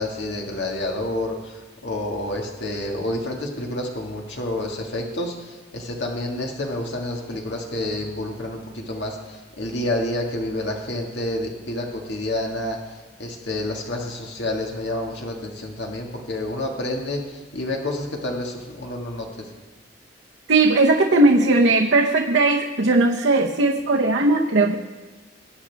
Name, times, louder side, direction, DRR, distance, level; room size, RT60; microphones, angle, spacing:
voice 1, 0.0-1.5 1.8-9.2 9.6-12.8 13.2-17.2 17.5-19.4, left 1 dB, 70° left, 0 dB, 1.9 m, -28 dB
voice 2, 20.5-24.8, right 2 dB, 85° right, 0 dB, 0.9 m, -18 dB
20.5 x 8.6 x 3.5 m, 1.3 s
head